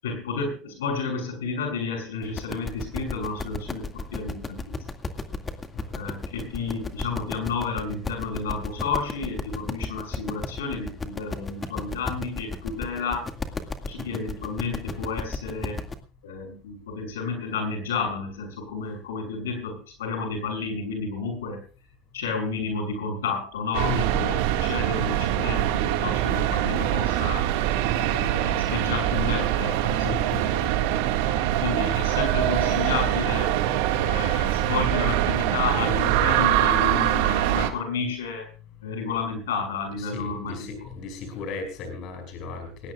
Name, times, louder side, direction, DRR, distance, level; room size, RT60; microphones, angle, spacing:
voice 1, 0.0-4.8 5.9-13.3 13.9-15.8 16.2-21.6 22.1-27.5 28.1-30.2 31.2-33.6 34.0-38.4 38.8-40.5, left 4 dB, 90° left, 4 dB, 6.8 m, -31 dB
sound 1, 2.2-15.9, left 3 dB, 20° left, 2.2 m, -34 dB
sound 2, 23.7-37.7, right 12 dB, 75° right, 1.9 m, -24 dB
voice 2, 23.8-24.3 30.0-30.9 40.0-42.9, left 4 dB, 55° left, 6 dB, 5.8 m, -35 dB
20.5 x 18.0 x 2.4 m, 0.35 s
hypercardioid pair, 95°, 0 cm